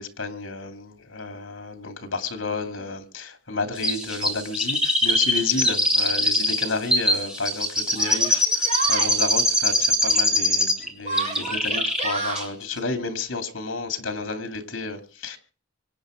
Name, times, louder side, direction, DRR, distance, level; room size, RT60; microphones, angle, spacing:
voice 1, 0.0-15.4, left 3 dB, 70° left, 2.5 m, -31 dB
Chirp tweet, 3.8-10.9 11.2-12.1 12.4-12.5, left 1 dB, 5° right, 2.8 m, -22 dB
Yell, 5.7-5.8 6.7-6.8 7.9-9.1 11.0-12.5, right 3 dB, 35° right, 4.9 m, -30 dB
24.5 x 8.8 x 5.1 m
head